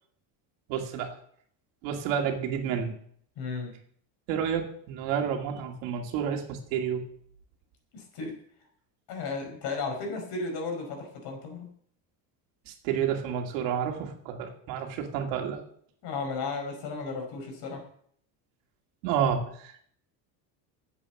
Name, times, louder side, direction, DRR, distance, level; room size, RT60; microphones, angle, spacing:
voice 1, 0.7-1.2 1.8-2.9 4.3-7.1 12.7-15.6 19.0-19.8, right 8 dB, 80° right, 3 dB, 2.4 m, -30 dB
voice 2, 3.4-3.8 7.9-8.4 9.1-11.7 16.0-17.8, left 4 dB, 55° left, 3 dB, 5.1 m, -34 dB
9.9 x 8.0 x 7.2 m, 0.63 s
cardioid pair, 150°, 45 cm